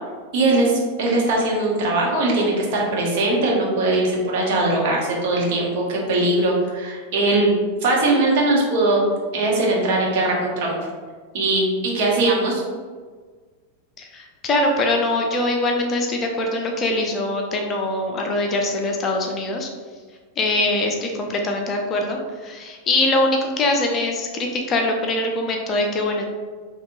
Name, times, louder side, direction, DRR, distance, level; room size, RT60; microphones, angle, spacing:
voice 1, 0.3-7.5 7.8-9.0 9.3-10.7 11.3-12.6, right 2 dB, 50° right, -3 dB, 1.1 m, -20 dB
voice 2, 14.0-19.7 20.4-26.2, left 2 dB, 25° left, 2 dB, 0.5 m, -23 dB
5.1 x 3.0 x 2.6 m, 1.5 s
figure-of-eight pair, 90°, 0 cm